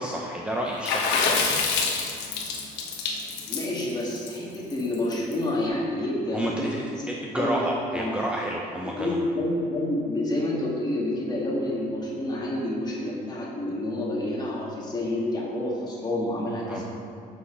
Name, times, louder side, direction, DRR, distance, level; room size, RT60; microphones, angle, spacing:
voice 1, 0.0-1.6 6.3-9.2 16.7-16.8, right 1 dB, 5° right, -2 dB, 0.7 m, -30 dB
Water / Splash splatter, 0.8-5.3, left 4 dB, 85° left, 1.1 m, -26 dB
voice 2, 3.5-7.5 7.9-8.1 8.8-16.8, left 1 dB, 25° left, -4 dB, 2.0 m, -29 dB
5.9 x 5.8 x 6.3 m, 2.6 s
cardioid pair, 110°, 17 cm